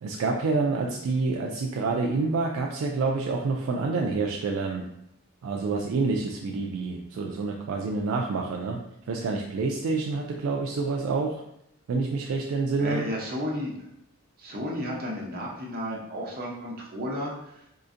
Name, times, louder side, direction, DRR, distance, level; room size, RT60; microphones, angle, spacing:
voice 1, 0.0-4.9 5.4-8.8 9.1-11.4 11.9-13.1, right 3 dB, 65° right, 1 dB, 0.3 m, -27 dB
voice 2, 12.8-13.7 14.4-17.7, equal, 40° right, -3 dB, 0.7 m, -33 dB
3.8 x 2.4 x 2.5 m, 0.78 s
head